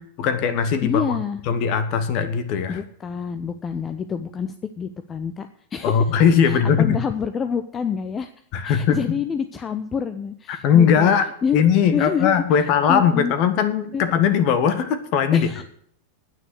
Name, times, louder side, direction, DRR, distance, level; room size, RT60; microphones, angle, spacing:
voice 1, 0.2-1.2 1.5-2.8 5.8-7.0 8.5-9.0 10.5-15.6, left 7 dB, 40° left, 11 dB, 1.7 m, -19 dB
voice 2, 0.8-1.4 2.7-6.1 6.4-8.3 8.6-11.1 11.4-11.6 11.9-12.4 12.9-13.3 13.9-14.0 15.3-15.6, left 7 dB, 20° left, 9 dB, 0.8 m, -27 dB
10.0 x 9.4 x 8.1 m, 0.65 s
figure-of-eight pair, 90°, 0 cm